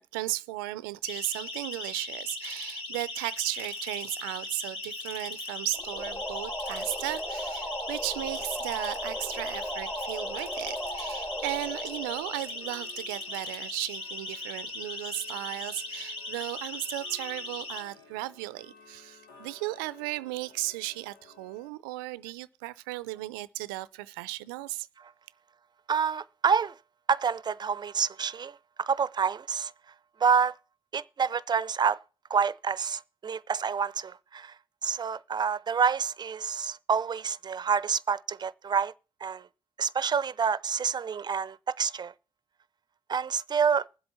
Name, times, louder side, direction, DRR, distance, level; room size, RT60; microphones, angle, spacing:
voice 1, 0.0-24.9, right 19 dB, 85° right, 0.5 m, -35 dB
Siren, 1.0-17.8, left 2 dB, 55° left, 3.4 m, -39 dB
Tick-tock, 2.2-2.9 3.4-4.7 5.0-5.9 6.2-7.2 7.6-7.9 8.3-21.7, left 4 dB, 90° left, 1.4 m, -54 dB
sound 1, 5.7-13.1, equal, 20° left, 4.0 m, -37 dB
voice 2, 25.9-26.7 27.1-29.7 30.2-30.6 30.9-32.0 32.3-34.5 34.8-38.9 39.2-39.5 39.8-42.1 43.1-43.9, right 6 dB, 40° right, 0.6 m, -28 dB
20.0 x 7.9 x 4.3 m
hypercardioid pair, 45°, 11 cm